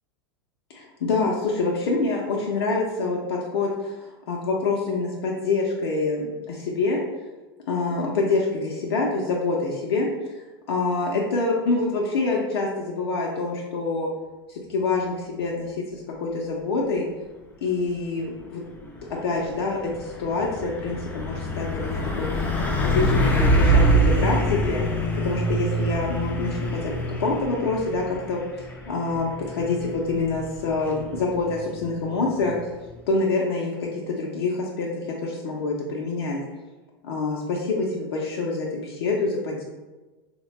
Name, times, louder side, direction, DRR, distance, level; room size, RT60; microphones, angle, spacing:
voice 1, 0.7-7.0 7.7-10.1 10.7-14.1 14.5-17.1 17.6-18.6 19.1-22.5 22.8-24.8 25.2-32.6 33.1-34.9 35.2-36.4 37.0-39.6, left 3 dB, 65° left, -2 dB, 0.6 m, -26 dB
Truck, 18.8-33.1, right 1 dB, 10° left, 0.5 m, -25 dB
3.8 x 2.2 x 3.0 m, 1.2 s
hypercardioid pair, 95°, 14 cm